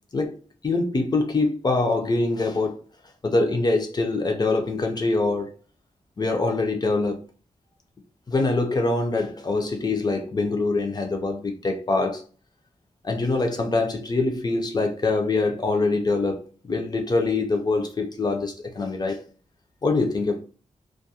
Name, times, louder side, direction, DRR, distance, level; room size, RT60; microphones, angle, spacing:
voice 1, 0.6-2.7 3.2-5.5 6.2-7.2 8.3-12.2 13.0-19.2 19.8-20.4, left 3 dB, 30° left, 0.4 m, -24 dB
2.3 x 2.1 x 2.7 m
wide cardioid pair, 140°, 13 cm